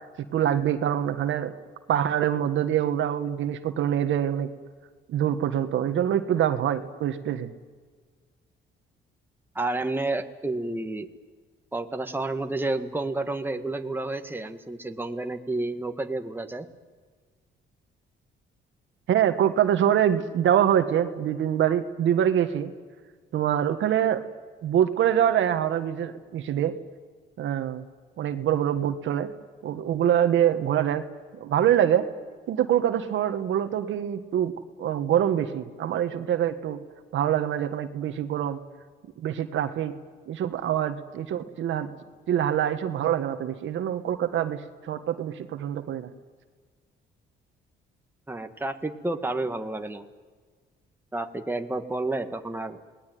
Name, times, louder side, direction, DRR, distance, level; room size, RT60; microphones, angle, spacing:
voice 1, 0.3-1.5 1.9-4.5 5.1-7.5 19.1-22.7 23.3-24.2 24.6-26.7 27.4-27.8 28.2-29.3 29.6-31.0 31.4-32.1 32.5-34.5 34.8-36.8 37.1-38.6 39.2-39.9 40.3-41.9 42.3-46.1, right 10 dB, 75° right, 8 dB, 1.6 m, -25 dB
voice 2, 9.6-11.1 11.7-16.7 48.3-50.1 51.1-52.8, right 2 dB, 10° right, 6 dB, 1.8 m, -30 dB
27.5 x 19.5 x 9.4 m, 1.5 s
cardioid pair, 90°, 20 cm